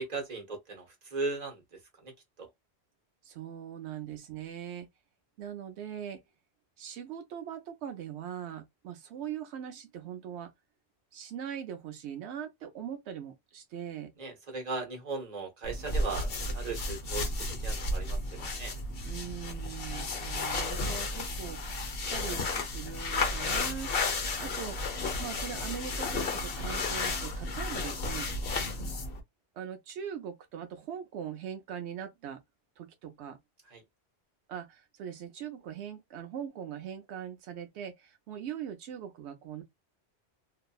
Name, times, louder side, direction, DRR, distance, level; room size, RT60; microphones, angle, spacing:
voice 1, 0.0-2.5 14.2-18.8 28.5-28.7 33.7-33.8, right 3 dB, 40° right, 1.1 m, -38 dB
voice 2, 3.2-4.9 5.4-6.2 6.8-10.5 11.1-14.1 19.0-21.7 22.0-24.8 25.2-28.3 29.6-32.4 32.8-33.4 34.5-39.6, right 9 dB, 90° right, 0.9 m, -41 dB
sound 1, 15.6-29.2, left 2 dB, 60° left, 1.0 m, -33 dB
2.6 x 2.6 x 2.3 m
omnidirectional pair, 1.1 m